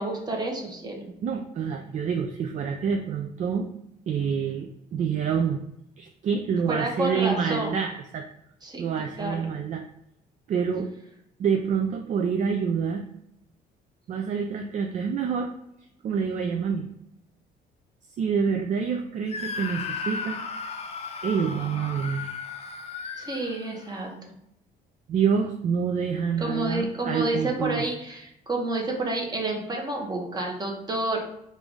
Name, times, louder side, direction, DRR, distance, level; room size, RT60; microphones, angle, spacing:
voice 1, 0.0-1.1 6.7-7.8 8.6-8.9 9.2-9.4 23.2-24.4 26.4-31.3, right 2 dB, 25° right, 0 dB, 1.1 m, -30 dB
voice 2, 1.2-3.7 4.1-5.6 6.0-8.3 8.8-9.8 10.5-10.9 11.4-13.0 14.1-15.5 16.0-16.9 18.2-20.4 21.2-22.3 25.1-27.9, right 6 dB, 45° right, 4 dB, 0.4 m, -27 dB
Screaming, 19.3-24.1, left 5 dB, 40° left, 0.5 m, -35 dB
3.7 x 2.6 x 4.6 m, 0.80 s
cardioid pair, 110°, 17 cm